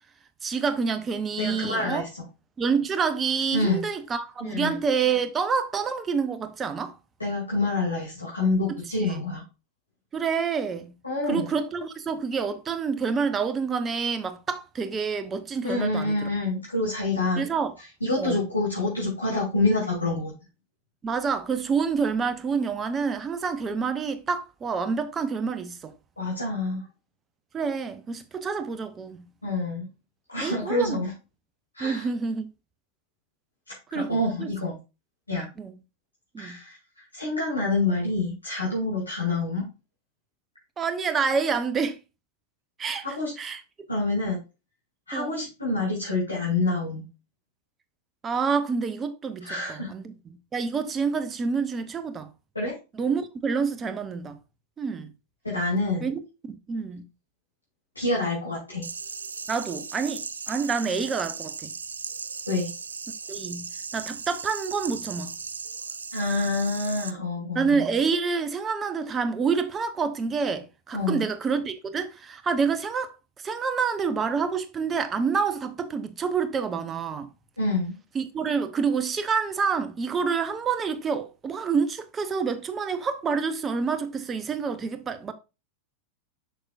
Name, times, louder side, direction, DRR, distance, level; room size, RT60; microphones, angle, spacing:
voice 1, 0.4-2.1 2.6-7.0 9.0-9.2 10.1-10.9 11.3-16.3 17.4-17.7 18.2-18.4 21.0-25.9 27.5-29.2 30.4-31.0 31.8-32.5 33.9-34.5 35.6-35.7 36.3-36.6 40.8-42.0 42.8-43.1 43.4-43.6 45.1-45.3 48.2-50.1 50.5-52.3 52.9-54.4 54.8-55.1 56.0-57.0 59.5-61.7 63.3-63.7 63.9-65.3 67.5-73.1 73.4-77.3 78.1-85.3, right 5 dB, 20° right, 0.8 m, -28 dB
voice 2, 1.4-2.1 3.5-3.8 4.4-4.8 7.2-9.4 11.0-11.5 15.6-17.4 18.0-20.3 26.2-26.8 29.4-29.8 30.3-31.1 31.7-32.1 33.7-34.8 35.3-35.5 36.4-39.7 43.0-43.3 43.9-44.4 45.1-47.0 49.4-49.9 52.5-52.7 55.4-56.1 57.9-58.8 62.5-62.7 66.1-67.8 70.9-71.2 77.6-77.9, left 2 dB, 80° left, 2.7 m, -27 dB
sound 1, 58.8-67.1, right 5 dB, 75° right, 0.4 m, -37 dB
6.5 x 6.0 x 2.5 m
figure-of-eight pair, 90°, 0 cm